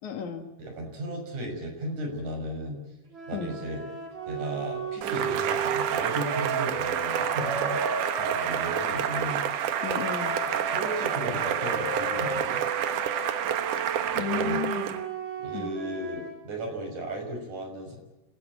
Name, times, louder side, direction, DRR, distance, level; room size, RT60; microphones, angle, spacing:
voice 1, 0.0-0.5 3.3-3.5 9.8-10.4 14.1-15.0 15.5-15.7, left 8 dB, 70° left, 6 dB, 3.4 m, -33 dB
voice 2, 0.6-2.8 3.3-3.8 4.3-7.8 8.1-9.8 10.4-12.6 14.1-14.6 15.4-18.0, right 1 dB, 70° right, 3 dB, 7.7 m, -35 dB
sound 1, 3.1-9.2 9.7-16.4, right 3 dB, 40° right, 4.9 m, -35 dB
Cheering / Applause, 5.0-15.1, right 9 dB, 85° right, 2.8 m, -29 dB
28.5 x 17.5 x 9.1 m, 0.99 s
omnidirectional pair, 3.5 m